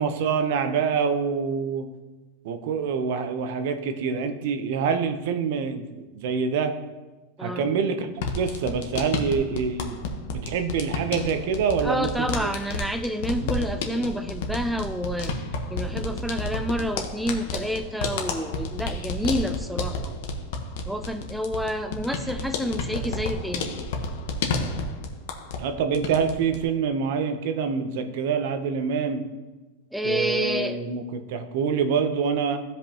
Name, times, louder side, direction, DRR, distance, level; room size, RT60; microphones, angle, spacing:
voice 1, 0.0-1.9 2.4-6.7 7.4-8.1 8.3-10.0 10.3-12.3 13.4-13.5 25.6-29.2 30.0-32.6, right 6 dB, 60° right, 8 dB, 0.8 m, -26 dB
voice 2, 7.4-7.7 11.8-15.4 15.7-20.1 20.9-23.7 29.9-30.8, equal, ahead, 6 dB, 0.3 m, -29 dB
sound 1, 8.1-25.7 25.9-26.6, left 3 dB, 65° left, 1.1 m, -31 dB
15.0 x 5.3 x 2.9 m, 1.2 s
supercardioid pair, 160°, 0 cm